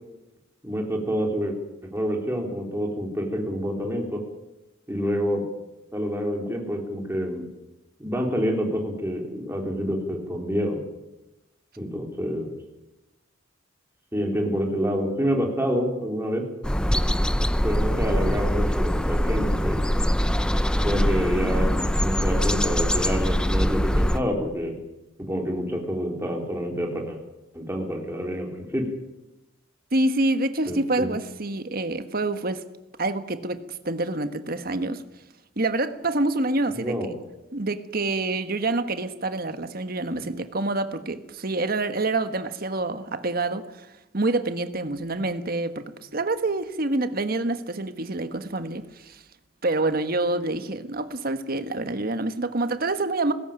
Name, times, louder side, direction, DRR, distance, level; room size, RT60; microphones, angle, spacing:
voice 1, 0.6-1.5 1.9-4.2 4.9-5.4 5.9-7.5 8.0-10.8 11.8-12.5 14.1-16.4 17.6-19.8 20.8-24.7 25.2-27.2 27.5-28.9 30.7-31.1 36.8-37.1, equal, 10° right, 3.7 m, -27 dB
sound 1, 16.6-24.2, equal, 5° left, 0.7 m, -23 dB
voice 2, 29.9-32.7 33.0-35.0 35.6-37.0 37.5-43.9 44.1-49.2 49.6-53.3, right 2 dB, 50° right, 1.4 m, -27 dB
19.5 x 16.5 x 8.9 m
head